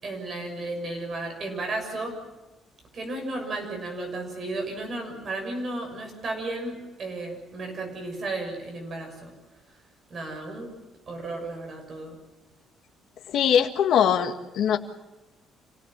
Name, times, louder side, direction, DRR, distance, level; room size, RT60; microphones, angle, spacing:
voice 1, 0.0-2.1 2.9-9.3 10.1-10.7 11.1-12.1, right 2 dB, 30° right, 3 dB, 6.6 m, -33 dB
voice 2, 13.3-14.8, left 8 dB, 60° left, 5 dB, 1.7 m, -22 dB
27.5 x 17.5 x 7.5 m, 1.1 s
cardioid pair, 170°, 0 cm